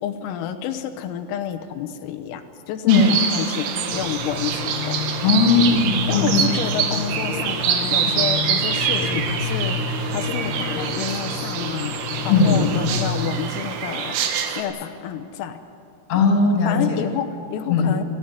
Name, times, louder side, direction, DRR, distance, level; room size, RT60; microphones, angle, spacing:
voice 1, 0.0-5.3 6.1-9.8 10.1-12.0 12.3-14.2 14.6-15.6 16.7-18.0, left 9 dB, 90° left, 6 dB, 3.8 m, -29 dB
sound 1, 2.9-14.6, right 7 dB, 90° right, 4.4 m, -26 dB
sound 2, 3.9-13.3, left 4 dB, 70° left, 2.7 m, -29 dB
voice 2, 5.2-6.4 12.3-12.6 16.1-17.0 17.7-17.9, left 4 dB, 35° left, 1 dB, 3.4 m, -17 dB
30.0 x 13.5 x 9.4 m, 2.5 s
omnidirectional pair, 5.9 m